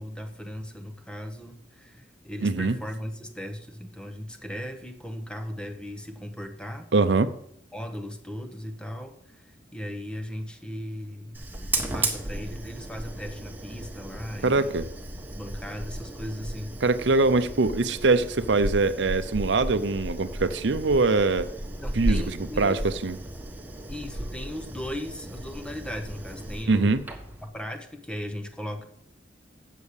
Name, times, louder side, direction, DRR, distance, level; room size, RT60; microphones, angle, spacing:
voice 1, 0.0-6.9 7.7-11.4 11.9-14.8 15.3-16.8 21.8-22.8 23.9-27.0 27.4-28.8, equal, 5° left, 6 dB, 1.0 m, -37 dB
voice 2, 2.4-2.8 6.9-7.3 14.4-14.9 16.8-21.5 22.0-23.2 26.7-27.0, right 3 dB, 70° right, 11 dB, 0.7 m, -23 dB
Fire, 11.3-27.5, right 1 dB, 10° right, 1.4 m, -34 dB
8.3 x 7.2 x 6.5 m, 0.73 s
head